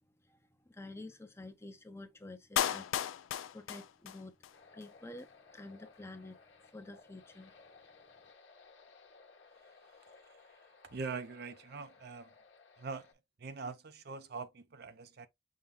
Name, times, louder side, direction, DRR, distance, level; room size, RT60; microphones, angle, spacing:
voice 1, 0.2-2.9 3.5-4.4 4.6-6.4 6.6-7.5, left 2 dB, 15° left, 0.6 m, -49 dB
Clapping, 2.6-4.5 4.8-4.9, left 10 dB, 90° left, 0.3 m, -35 dB
sound 1, 4.5-13.1, left 4 dB, 65° left, 1.0 m, -60 dB
voice 2, 10.8-12.3 12.8-13.1 13.4-15.3, right 4 dB, 55° right, 0.6 m, -43 dB
5.6 x 2.2 x 3.3 m
head